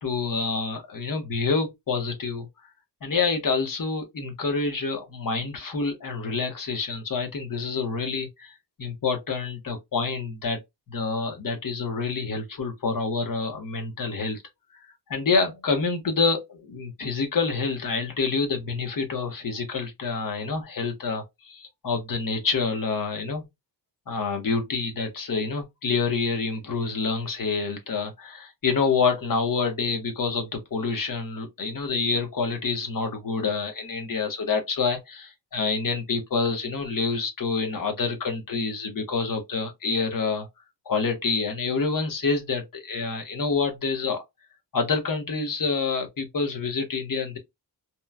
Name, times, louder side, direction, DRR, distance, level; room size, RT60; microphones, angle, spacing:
voice 1, 0.0-2.5 3.0-10.6 10.9-14.4 15.1-23.4 24.1-40.5 40.9-44.2 44.7-47.4, left 4 dB, 50° left, 0.8 m, -27 dB
2.9 x 2.1 x 2.3 m
wide cardioid pair, 175°, 42 cm